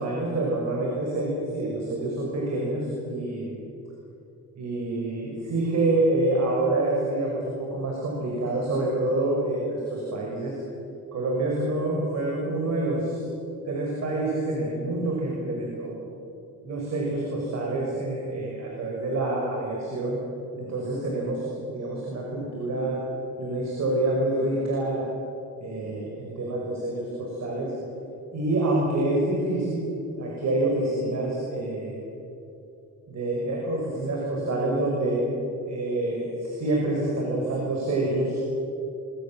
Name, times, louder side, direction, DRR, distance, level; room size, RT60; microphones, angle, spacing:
voice 1, 0.0-3.5 4.6-10.6 11.1-13.2 13.7-16.0 16.6-20.2 20.6-23.0 23.4-25.0 25.6-27.7 28.3-29.9 30.2-32.0 33.1-35.2 35.7-38.4, right 2 dB, 60° right, -2 dB, 6.3 m, -27 dB
23.0 x 23.0 x 7.8 m, 2.9 s
cardioid pair, 90°, 30 cm